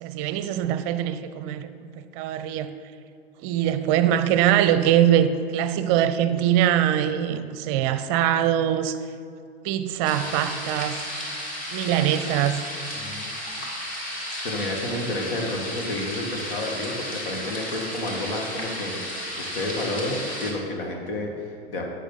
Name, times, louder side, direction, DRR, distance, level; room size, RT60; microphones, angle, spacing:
voice 1, 0.0-2.7 3.4-9.0 9.6-11.0 11.7-12.6, right 11 dB, 40° right, 12 dB, 0.6 m, -23 dB
sound 1, 10.0-20.5, left 1 dB, 25° left, 2.3 m, -33 dB
voice 2, 13.0-13.3 14.4-21.8, left 1 dB, 60° left, 1 dB, 2.0 m, -30 dB
12.0 x 9.1 x 4.1 m, 2.4 s
figure-of-eight pair, 85°, 31 cm